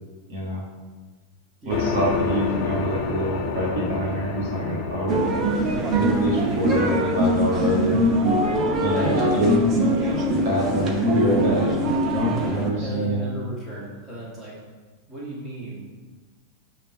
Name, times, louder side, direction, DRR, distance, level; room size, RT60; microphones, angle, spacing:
voice 1, 0.3-0.6 1.6-5.2 5.9-8.0 8.8-9.5 10.3-11.7 12.1-13.3, equal, 55° right, -3 dB, 1.6 m, -25 dB
voice 2, 1.6-1.9 8.5-9.5 12.8-14.6 15.1-15.9, right 1 dB, 15° right, -6 dB, 2.0 m, -33 dB
sound 1, 1.7-11.8, left 4 dB, 45° left, 1.2 m, -32 dB
sound 2, 5.1-12.7, equal, 30° right, 1.0 m, -22 dB
9.0 x 3.0 x 5.5 m, 1.4 s
figure-of-eight pair, 90°, 0 cm